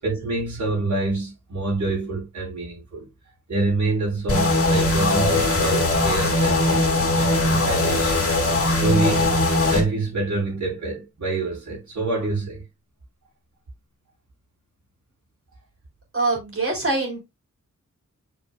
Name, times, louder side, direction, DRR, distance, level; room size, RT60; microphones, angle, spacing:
voice 1, 0.0-3.1 3.5-9.3 9.7-12.6, right 2 dB, 75° right, 4.2 m, -27 dB
sound 1, 4.3-9.8, left 2 dB, 50° left, 2.3 m, -20 dB
voice 2, 16.1-17.2, right 3 dB, 45° right, 3.9 m, -24 dB
8.1 x 5.2 x 2.3 m
wide cardioid pair, 110°, 30 cm